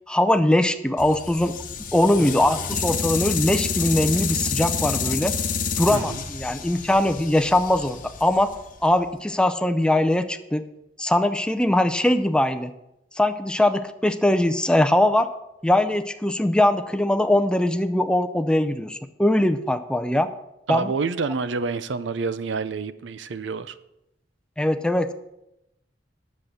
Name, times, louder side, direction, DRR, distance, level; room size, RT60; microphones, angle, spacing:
voice 1, 0.1-1.6 1.9-5.3 5.8-8.5 8.8-10.7 11.0-12.7 13.2-15.3 15.6-20.3 20.7-20.9 24.6-25.1, left 1 dB, 5° left, 9 dB, 0.5 m, -21 dB
sound 1, 1.0-9.1, left 6 dB, 50° left, 1.0 m, -29 dB
voice 2, 2.2-2.5 5.9-6.2 20.7-23.8, right 4 dB, 85° right, 14 dB, 0.6 m, -28 dB
10.0 x 7.4 x 6.6 m, 0.88 s
head